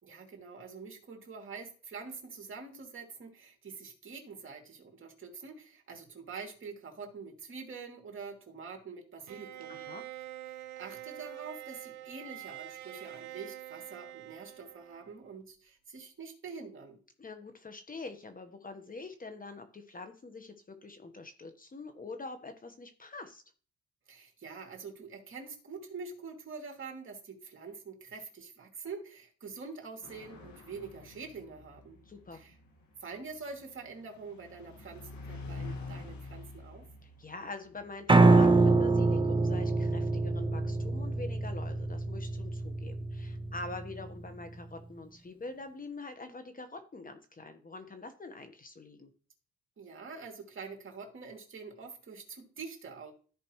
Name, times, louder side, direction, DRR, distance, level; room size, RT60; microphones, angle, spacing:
voice 1, 0.0-9.8 10.5-17.0 24.1-32.0 32.3-32.5 33.0-36.9 49.8-53.1, right 4 dB, 40° right, 1 dB, 2.5 m, -45 dB
Bowed string instrument, 9.3-15.3, right 13 dB, 70° right, 0.7 m, -46 dB
voice 2, 9.7-10.0 17.2-23.4 32.0-32.4 37.0-49.1, left 3 dB, 30° left, 8 dB, 1.1 m, -45 dB
sound 1, 30.0-41.0, left 3 dB, 70° left, 1.8 m, -48 dB
Piano, 38.1-44.3, right 3 dB, 15° right, 0.6 m, -25 dB
14.0 x 5.1 x 3.1 m, 0.42 s
cardioid pair, 90°, 30 cm